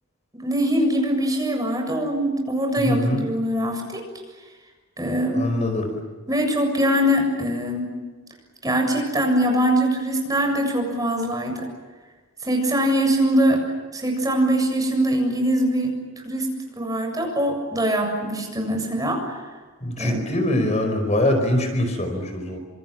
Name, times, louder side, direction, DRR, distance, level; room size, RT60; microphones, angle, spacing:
voice 1, 0.3-4.1 5.0-5.4 6.3-7.9 8.6-11.7 12.4-13.6 13.9-15.9 16.2-16.5 16.8-19.4 20.0-20.2, right 1 dB, 15° right, 3 dB, 7.3 m, -22 dB
voice 2, 2.8-3.2 5.3-5.9 19.8-22.6, left 1 dB, 35° left, 5 dB, 4.9 m, -23 dB
28.5 x 27.5 x 7.5 m, 1.4 s
head